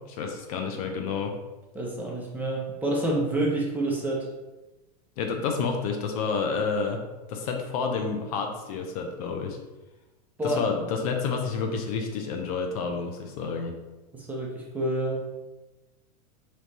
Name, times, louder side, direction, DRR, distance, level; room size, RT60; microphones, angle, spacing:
voice 1, 0.1-1.3 5.2-7.0 7.3-9.6 10.4-13.7, left 5 dB, 60° left, 3 dB, 0.7 m, -29 dB
voice 2, 1.7-4.3 10.4-10.6 14.1-15.2, right 1 dB, 10° right, -3 dB, 0.8 m, -28 dB
3.2 x 3.1 x 4.1 m, 1.1 s
supercardioid pair, 135°, 21 cm